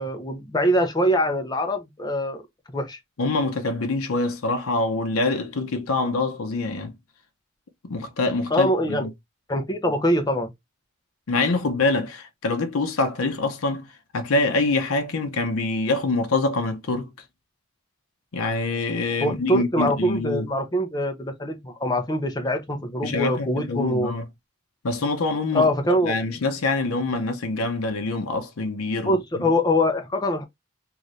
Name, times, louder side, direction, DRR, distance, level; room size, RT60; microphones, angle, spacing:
voice 1, 0.0-2.4 2.7-3.0 8.5-9.1 9.5-10.5 19.2-24.1 25.5-26.2 29.1-30.4, equal, 20° left, 0.6 m, -23 dB
voice 2, 3.2-6.9 7.8-9.1 11.3-13.9 14.1-17.1 18.3-20.5 23.0-24.2 24.8-25.7 26.0-29.2, left 3 dB, 80° left, 0.6 m, -25 dB
2.6 x 2.6 x 3.1 m
head